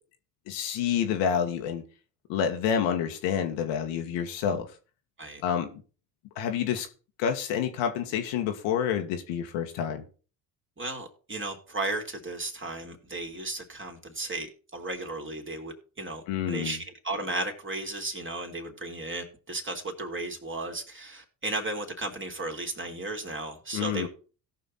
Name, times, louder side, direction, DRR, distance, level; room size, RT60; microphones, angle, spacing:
voice 1, 0.5-1.8 2.3-4.7 5.4-5.8 6.4-6.9 7.2-10.0 16.3-16.8 23.7-24.1, left 8 dB, 70° left, 1.7 m, -28 dB
voice 2, 10.8-24.1, right 2 dB, 25° right, 3.2 m, -35 dB
17.0 x 5.9 x 4.2 m
hypercardioid pair, 55°, 48 cm